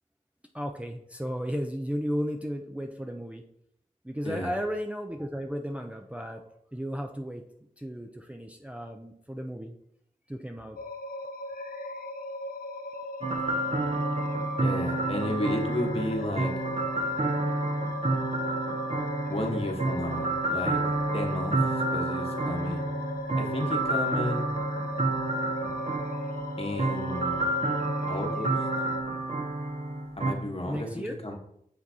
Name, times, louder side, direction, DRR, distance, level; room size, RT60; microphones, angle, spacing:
voice 1, 0.5-3.4 4.0-6.4 6.7-7.4 7.8-9.8 10.3-10.8 30.7-31.2, equal, 10° right, 3 dB, 0.5 m, -34 dB
sound 1, 10.8-29.0, left 1 dB, 85° left, 0.5 m, -38 dB
sound 2, 13.2-30.3, right 2 dB, 45° right, 0.9 m, -29 dB
voice 2, 14.6-16.5 19.3-20.8 21.1-21.6 21.9-22.8 23.3-24.4 26.6-27.4 28.1-28.5 30.2-31.3, left 1 dB, 40° left, 2 dB, 1.3 m, -32 dB
8.6 x 3.9 x 2.8 m, 0.72 s
wide cardioid pair, 50°, 15 cm